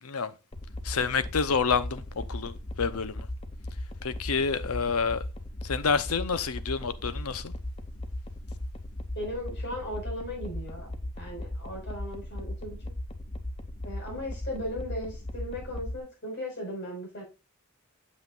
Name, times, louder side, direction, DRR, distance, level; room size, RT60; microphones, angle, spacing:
sound 1, 0.5-16.0, left 1 dB, 25° left, 0.7 m, -38 dB
voice 1, 0.8-2.0 2.3-3.3 4.0-5.2 5.6-7.5, left 5 dB, 85° left, 0.8 m, -28 dB
voice 2, 9.1-10.9 11.2-12.8 13.8-17.2, equal, 55° left, 5.1 m, -37 dB
8.3 x 7.3 x 2.5 m
head